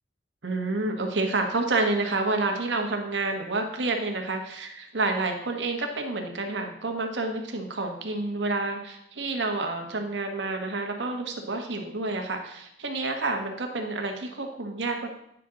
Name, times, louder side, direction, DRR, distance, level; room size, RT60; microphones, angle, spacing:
voice 1, 0.4-15.2, right 3 dB, 90° right, 3 dB, 1.2 m, -29 dB
9.1 x 5.9 x 3.8 m, 0.74 s
head